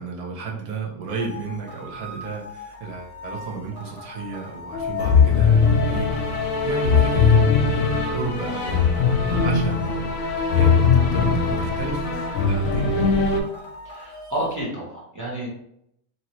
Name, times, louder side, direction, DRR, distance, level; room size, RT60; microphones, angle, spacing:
voice 1, 0.0-10.1 10.5-12.9, right 3 dB, 50° right, -2 dB, 0.4 m, -33 dB
sound 1, 1.1-14.6, left 1 dB, 45° left, 0.8 m, -40 dB
sound 2, 4.7-13.4, left 5 dB, 70° left, 0.9 m, -20 dB
voice 2, 13.9-15.5, right 1 dB, 15° right, -6 dB, 0.8 m, -30 dB
2.9 x 2.7 x 3.0 m, 0.74 s
omnidirectional pair, 1.5 m